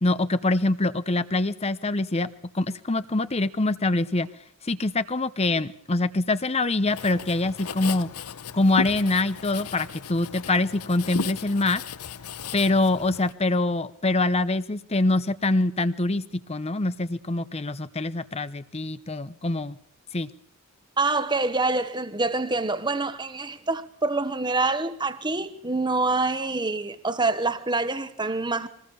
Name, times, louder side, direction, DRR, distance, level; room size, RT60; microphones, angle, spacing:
voice 1, 0.0-2.3 2.5-4.3 4.6-8.1 8.5-11.8 12.5-16.2 16.5-19.8 20.1-20.3, left 2 dB, 30° left, 0.8 m, -24 dB
Writing, 6.9-13.3, left 5 dB, 85° left, 0.9 m, -36 dB
voice 2, 21.0-28.7, right 3 dB, 20° right, 1.2 m, -26 dB
24.5 x 20.0 x 7.0 m
head